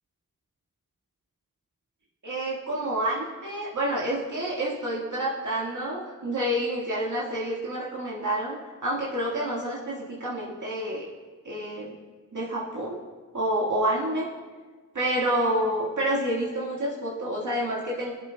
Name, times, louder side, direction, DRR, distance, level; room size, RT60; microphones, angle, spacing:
voice 1, 2.2-8.6 8.8-11.1 11.4-11.9 12.3-13.0 13.3-14.3 14.9-18.1, right 1 dB, 60° right, -6 dB, 1.8 m, -28 dB
17.5 x 8.0 x 2.2 m, 1.4 s
cardioid pair, 40°, 34 cm